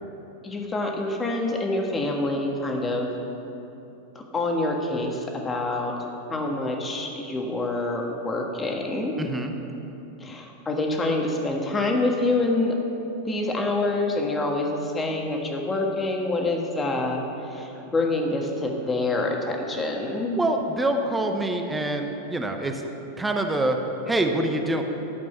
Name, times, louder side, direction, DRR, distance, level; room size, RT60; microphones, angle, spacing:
voice 1, 0.4-3.1 4.1-5.9 6.3-9.1 10.2-12.7 13.2-20.5, left 2 dB, 20° left, 1 dB, 1.5 m, -26 dB
voice 2, 9.2-9.5 20.4-22.8 23.2-23.8 24.1-24.8, right 1 dB, 10° right, 4 dB, 0.9 m, -25 dB
12.0 x 5.3 x 6.8 m, 3.0 s
hypercardioid pair, 120°, 0 cm